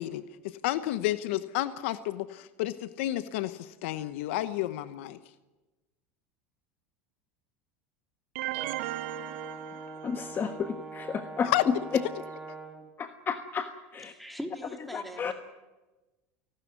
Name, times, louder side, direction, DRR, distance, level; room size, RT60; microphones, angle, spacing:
voice 1, 0.0-5.2 11.4-11.6, left 15 dB, 75° left, 0.9 m, -31 dB
sound 1, 8.4-10.5, right 16 dB, 75° right, 0.8 m, -36 dB
Brass instrument, 8.5-12.9, right 3 dB, 15° right, 3.1 m, -43 dB
voice 2, 10.0-12.0 13.0-14.1 14.9-15.3, left 6 dB, 30° left, 1.3 m, -31 dB
voice 3, 14.1-15.3, equal, ahead, 3.4 m, -40 dB
29.5 x 12.5 x 9.5 m
supercardioid pair, 100°, 7 cm